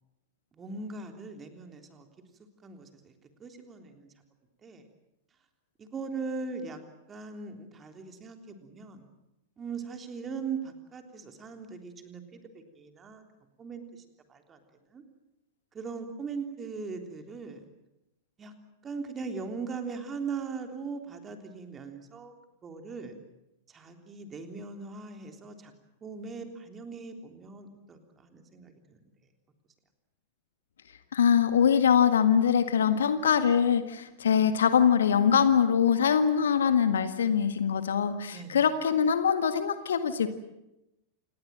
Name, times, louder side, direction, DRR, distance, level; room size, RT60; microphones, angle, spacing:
voice 1, 0.5-2.1 2.4-4.1 4.6-4.8 5.8-6.8 7.1-9.1 9.6-13.2 13.6-14.6 14.9-15.0 15.7-17.6 18.4-18.5 18.8-22.3 22.6-23.1 23.7-25.7 26.0-29.0 38.3-38.7, right 5 dB, 20° right, 5 dB, 3.5 m, -40 dB
voice 2, 31.1-40.3, left 7 dB, 65° left, 10 dB, 1.7 m, -23 dB
28.5 x 19.5 x 7.6 m, 0.91 s
figure-of-eight pair, 90°, 0 cm